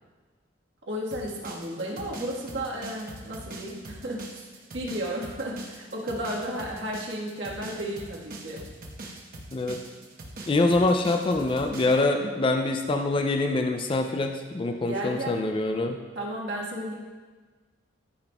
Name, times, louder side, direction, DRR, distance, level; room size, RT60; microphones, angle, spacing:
voice 1, 0.9-4.5 4.7-8.7 14.8-15.4 16.1-16.9, equal, 70° right, -3 dB, 1.5 m, -33 dB
sound 1, 1.1-12.0, right 2 dB, 50° right, 1.0 m, -42 dB
voice 2, 10.5-16.0, left 2 dB, 25° left, 5 dB, 0.3 m, -25 dB
12.5 x 5.9 x 2.3 m, 1.4 s
head